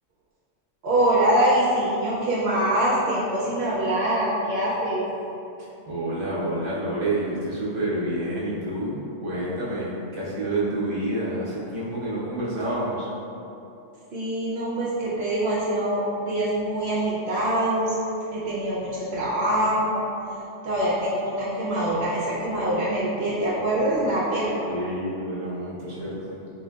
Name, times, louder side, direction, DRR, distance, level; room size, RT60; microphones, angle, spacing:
voice 1, 0.8-5.0 14.1-18.0 18.3-20.0 20.6-24.7, right 1 dB, 65° right, -7 dB, 0.8 m, -24 dB
voice 2, 5.9-13.1 24.7-26.3, right 1 dB, 30° right, -8 dB, 0.6 m, -28 dB
3.7 x 3.1 x 2.3 m, 2.8 s
omnidirectional pair, 1.3 m